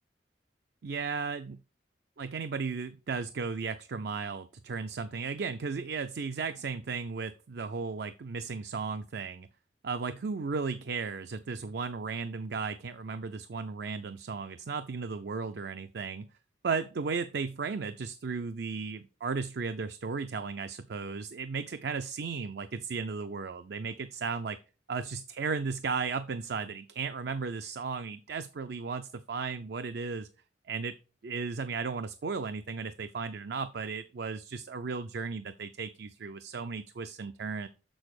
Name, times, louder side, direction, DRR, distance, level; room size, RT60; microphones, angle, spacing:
voice 1, 0.8-1.6 2.2-9.5 9.8-16.3 16.6-24.6 24.9-30.3 30.7-30.9 31.2-37.7, right 5 dB, 65° right, 10 dB, 0.4 m, -35 dB
6.7 x 6.3 x 4.8 m, 0.35 s
head